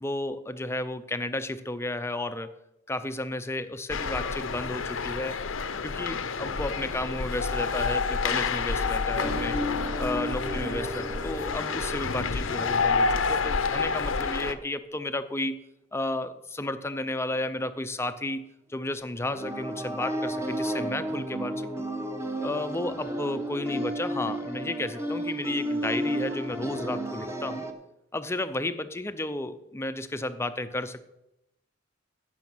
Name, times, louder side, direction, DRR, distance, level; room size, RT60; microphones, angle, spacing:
voice 1, 0.0-2.5 2.9-5.4 5.7-9.6 10.0-15.6 15.9-18.4 18.7-21.9 22.4-27.7 28.1-31.0, left 2 dB, 15° left, 11 dB, 0.6 m, -33 dB
sound 1, 3.9-14.5, left 4 dB, 75° left, 0.7 m, -29 dB
sound 2, 9.2-13.3 19.2-27.7, equal, 15° right, 1.1 m, -33 dB
15.0 x 6.4 x 6.0 m, 0.88 s
head